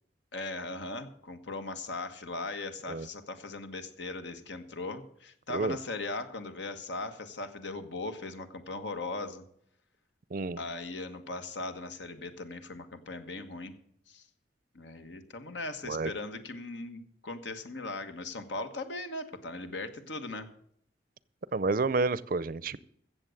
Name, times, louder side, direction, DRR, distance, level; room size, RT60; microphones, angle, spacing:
voice 1, 0.3-9.4 10.6-13.7 14.1-14.2 14.7-20.5, left 2 dB, 85° left, 8 dB, 1.5 m, -39 dB
voice 2, 21.5-22.8, right 3 dB, 50° right, 19 dB, 0.5 m, -30 dB
15.0 x 7.6 x 6.6 m, 0.69 s
head